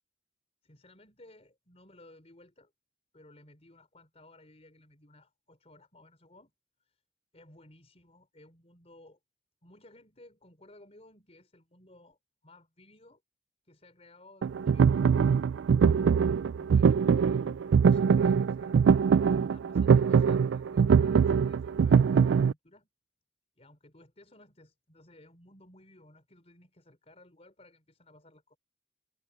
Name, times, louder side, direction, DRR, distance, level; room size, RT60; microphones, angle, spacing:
voice 1, 0.6-2.7 3.1-6.5 6.8-7.0 7.3-9.2 9.6-12.2 12.4-13.2 13.6-16.2 16.5-18.8 19.4-22.9 23.6-28.6, left 1 dB, 35° left, 4.4 m, -57 dB
sound 1, 14.4-22.5, right 6 dB, 70° right, 0.3 m, -23 dB
head